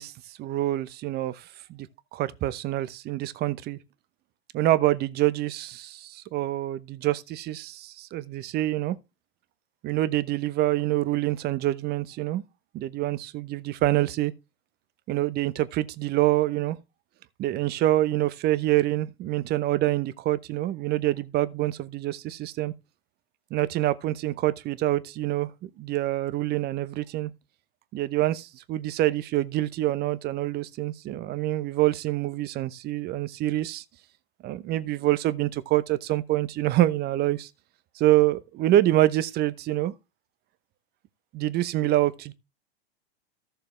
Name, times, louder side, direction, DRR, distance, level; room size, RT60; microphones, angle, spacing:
voice 1, 0.0-1.4 1.7-1.9 2.1-3.8 4.5-9.0 9.8-12.4 12.7-14.3 15.1-16.8 17.4-22.7 23.5-27.3 27.9-33.8 34.4-37.5 38.0-39.9 41.3-42.3, right 15 dB, 30° right, 0.8 m, -26 dB
14.0 x 6.8 x 3.2 m
hypercardioid pair, 105°, 31 cm